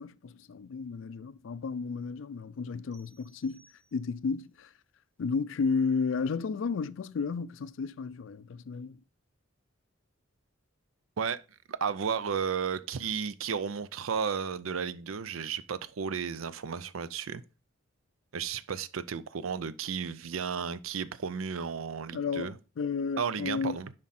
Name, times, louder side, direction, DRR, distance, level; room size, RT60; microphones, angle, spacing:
voice 1, 0.0-3.6 3.9-4.7 5.2-9.0 22.1-23.8, left 5 dB, 70° left, 0.4 m, -33 dB
sound 1, 2.9-4.4, right 3 dB, 35° right, 1.3 m, -64 dB
voice 2, 11.7-17.4 18.3-22.6 23.2-23.9, right 6 dB, 90° right, 0.5 m, -33 dB
7.3 x 5.1 x 4.2 m
head